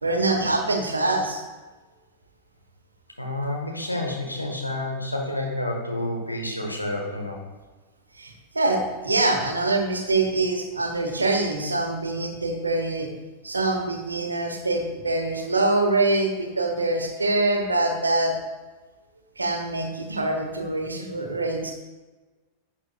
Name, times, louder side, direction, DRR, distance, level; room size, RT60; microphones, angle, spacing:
voice 1, 0.0-1.4 8.1-13.1 13.4-18.4 19.4-21.7, right 2 dB, 80° right, 4 dB, 1.1 m, -24 dB
voice 2, 3.2-7.4, left 1 dB, 85° left, 0 dB, 1.4 m, -29 dB
11.0 x 7.4 x 2.4 m, 1.2 s
figure-of-eight pair, 90°, 0 cm